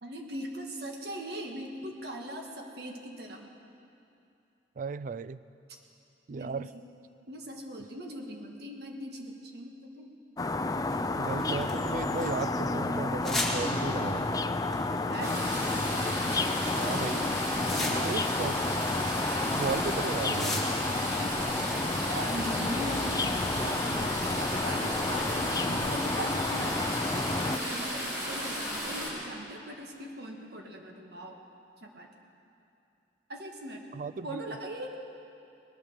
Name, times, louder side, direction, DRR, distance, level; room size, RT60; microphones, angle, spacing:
voice 1, 0.0-3.5 6.3-6.8 7.3-10.1 15.1-15.4 17.7-18.2 21.5-23.2 23.6-31.4 31.8-32.1 33.3-33.9 34.2-35.0, right 1 dB, 65° right, 2 dB, 1.7 m, -40 dB
voice 2, 4.8-5.4 6.3-6.7 11.2-14.4 16.8-17.4 17.8-18.6 19.5-20.7 33.9-34.6, right 4 dB, 50° right, 15 dB, 0.4 m, -35 dB
sound 1, 10.4-27.6, left 2 dB, 20° left, 0.4 m, -31 dB
sound 2, 10.9-12.4 13.2-13.6 14.7-15.4 16.3-16.5 16.8-18.3 18.6-20.9, left 2 dB, ahead, 1.9 m, -36 dB
sound 3, 15.2-29.1, equal, 20° right, 4.8 m, -34 dB
20.5 x 9.0 x 6.6 m, 2.6 s
head